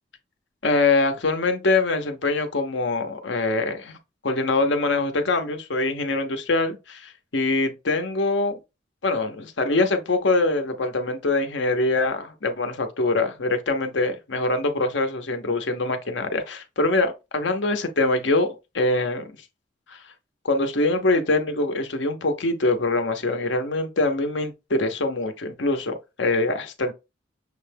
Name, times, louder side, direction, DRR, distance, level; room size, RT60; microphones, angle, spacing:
voice 1, 0.6-4.0 4.2-8.6 9.0-19.3 19.9-20.0 20.4-26.9, left 2 dB, 65° left, 0.8 m, -24 dB
6.5 x 2.2 x 3.4 m
head